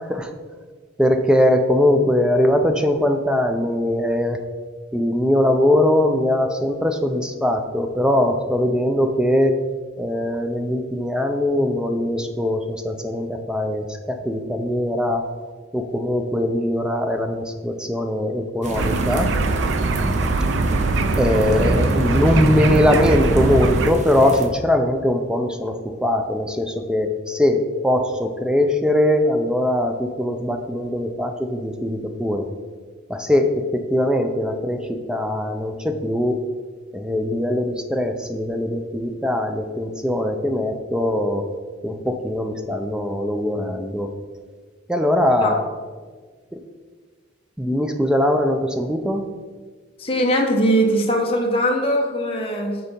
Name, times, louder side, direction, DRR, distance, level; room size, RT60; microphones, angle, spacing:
voice 1, 1.0-4.4 4.9-9.6 10.0-15.2 15.7-19.3 21.2-32.5 33.1-36.3 36.9-41.4 41.8-44.1 44.9-45.6 47.6-49.3, left 1 dB, 5° right, 5 dB, 0.4 m, -21 dB
sound 1, 18.6-24.5, right 1 dB, 40° right, 0.7 m, -26 dB
sound 2, 18.7-23.9, right 3 dB, 70° right, 0.4 m, -22 dB
voice 2, 50.0-52.8, equal, 30° left, 0 dB, 0.9 m, -20 dB
6.7 x 4.0 x 5.2 m, 1.5 s
head